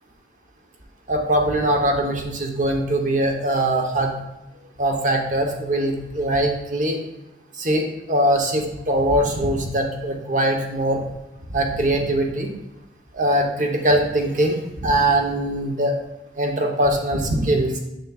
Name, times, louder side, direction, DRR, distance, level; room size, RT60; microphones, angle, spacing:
voice 1, 1.1-4.1 4.8-7.0 7.6-11.0 11.5-12.5 13.1-16.0 16.4-17.8, right 1 dB, 40° right, 2 dB, 0.9 m, -21 dB
7.4 x 6.3 x 2.4 m, 0.96 s
head